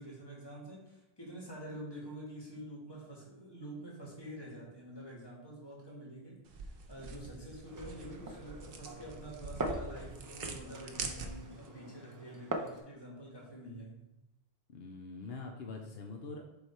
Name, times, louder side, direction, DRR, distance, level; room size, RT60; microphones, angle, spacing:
voice 1, 0.0-14.1, right 1 dB, 25° left, -4 dB, 1.7 m, -47 dB
sound 1, 6.5-11.7, right 4 dB, 65° right, 0.9 m, -44 dB
Glass, 7.7-12.8, right 1 dB, 30° right, 0.4 m, -43 dB
voice 2, 14.7-16.5, left 3 dB, 75° left, 2 dB, 0.9 m, -44 dB
7.0 x 3.3 x 4.4 m, 0.91 s
omnidirectional pair, 1.0 m